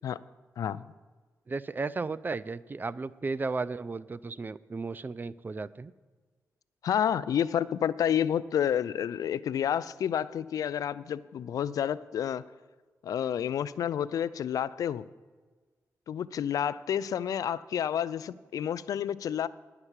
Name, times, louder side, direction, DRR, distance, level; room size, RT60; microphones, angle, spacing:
voice 1, 0.6-0.9 6.8-12.4 13.0-15.1 16.1-19.5, left 9 dB, 75° left, 17 dB, 0.4 m, -29 dB
voice 2, 1.5-5.9, right 3 dB, 30° right, 18 dB, 0.4 m, -34 dB
11.0 x 5.9 x 8.1 m, 1.4 s
cardioid pair, 75°, 6 cm